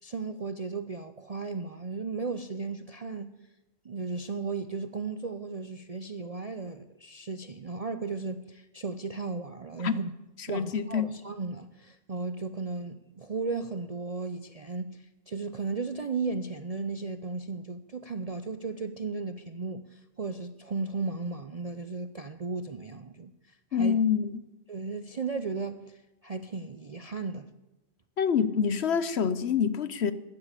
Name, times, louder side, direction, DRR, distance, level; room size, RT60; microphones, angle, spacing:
voice 1, 0.0-3.4 3.8-10.1 10.5-24.0 24.7-27.5, right 4 dB, 45° right, 0.5 m, -35 dB
voice 2, 10.5-11.1 23.7-24.4 28.2-30.1, left 7 dB, 55° left, 0.9 m, -26 dB
14.5 x 10.5 x 8.2 m
omnidirectional pair, 1.4 m